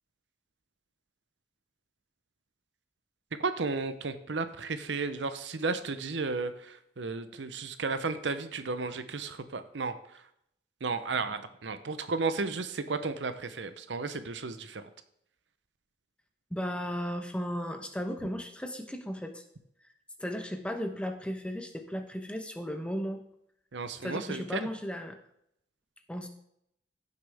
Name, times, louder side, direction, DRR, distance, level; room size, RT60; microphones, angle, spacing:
voice 1, 3.4-10.3 10.8-14.8 23.7-24.7, right 4 dB, 90° right, 11 dB, 0.8 m, -33 dB
voice 2, 16.5-19.4 20.2-23.2 24.0-25.2 26.1-26.3, equal, 5° left, 5 dB, 0.9 m, -35 dB
15.0 x 6.6 x 3.5 m, 0.75 s
head